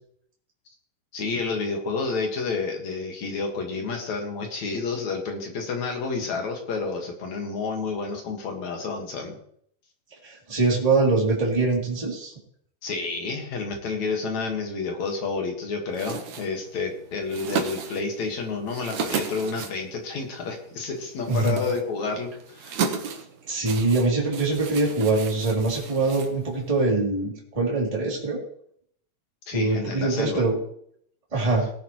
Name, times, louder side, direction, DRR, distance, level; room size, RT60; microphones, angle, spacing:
voice 1, 1.1-9.4 12.8-22.8 29.5-30.4, left 4 dB, 60° left, 2 dB, 3.0 m, -30 dB
voice 2, 10.2-12.3 21.3-21.5 23.5-28.4 29.5-30.6 31.3-31.6, right 3 dB, 10° right, -3 dB, 2.8 m, -23 dB
sound 1, 15.9-26.8, right 6 dB, 65° right, 2.4 m, -35 dB
18.5 x 10.0 x 3.2 m, 0.66 s
omnidirectional pair, 3.8 m